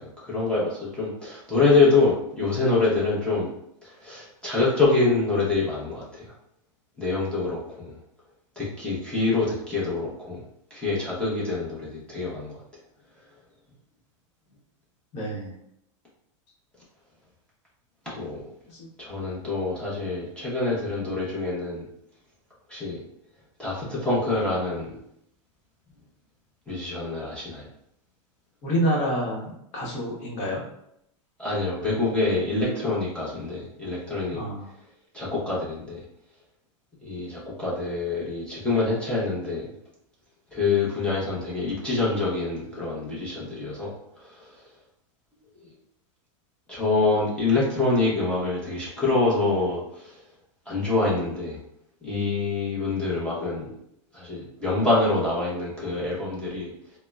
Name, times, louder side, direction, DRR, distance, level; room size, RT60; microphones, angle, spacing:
voice 1, 0.0-3.5 3.8-6.3 7.0-7.9 8.6-10.4 10.7-12.6 18.0-18.4 19.0-21.9 22.7-23.0 23.6-25.0 26.7-27.7 31.4-34.4 35.1-36.0 37.0-39.7 40.5-43.9 44.2-44.5 46.7-50.2 50.7-51.6 52.0-53.8 54.1-56.7, left 3 dB, 5° left, -7 dB, 0.9 m, -26 dB
voice 2, 15.1-15.5 18.7-18.9 28.6-30.6 34.3-34.7, equal, 40° left, -3 dB, 1.0 m, -28 dB
3.6 x 2.1 x 2.2 m, 0.75 s
supercardioid pair, 140°, 16 cm